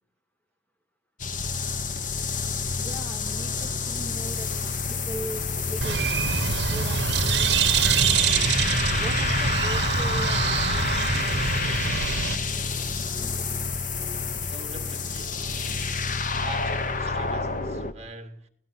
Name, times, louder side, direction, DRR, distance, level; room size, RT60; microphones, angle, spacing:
sound 1, 1.2-17.9, left 4 dB, 45° left, 1.3 m, -28 dB
voice 1, 2.8-8.6 9.0-13.3, equal, 10° left, 1.3 m, -41 dB
sound 2, 3.2-15.8, left 1 dB, 70° left, 2.6 m, -49 dB
Bird, 5.8-12.4, right 6 dB, 65° right, 1.1 m, -25 dB
voice 2, 14.5-15.5 16.3-18.5, right 2 dB, 35° right, 2.2 m, -43 dB
30.0 x 17.5 x 6.0 m
head